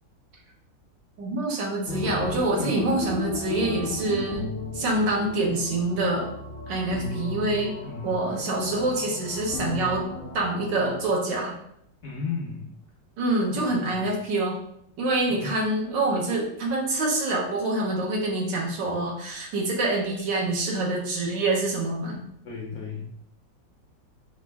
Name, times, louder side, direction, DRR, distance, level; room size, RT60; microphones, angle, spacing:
voice 1, 1.2-4.4 4.7-6.3 6.7-7.7 8.0-10.0 10.3-11.5 13.2-14.6 15.0-22.2, right 2 dB, 70° right, -1 dB, 1.6 m, -26 dB
sound 1, 1.9-11.0, left 2 dB, 85° left, 0.5 m, -35 dB
voice 2, 7.9-8.2 12.0-12.7 13.5-14.0 15.3-15.5 22.4-23.1, left 5 dB, 65° left, -2 dB, 0.9 m, -34 dB
5.0 x 2.6 x 3.4 m, 0.72 s
omnidirectional pair, 2.1 m